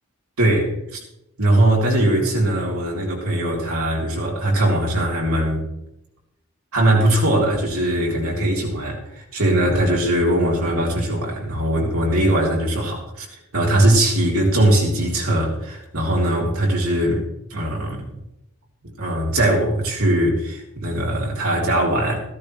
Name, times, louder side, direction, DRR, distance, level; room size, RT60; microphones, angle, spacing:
voice 1, 0.4-1.0 1.4-5.6 6.7-13.3 13.5-17.2 17.5-18.1 18.8-22.2, right 1 dB, 85° right, -2 dB, 3.6 m, -20 dB
15.0 x 13.5 x 3.4 m, 0.85 s
head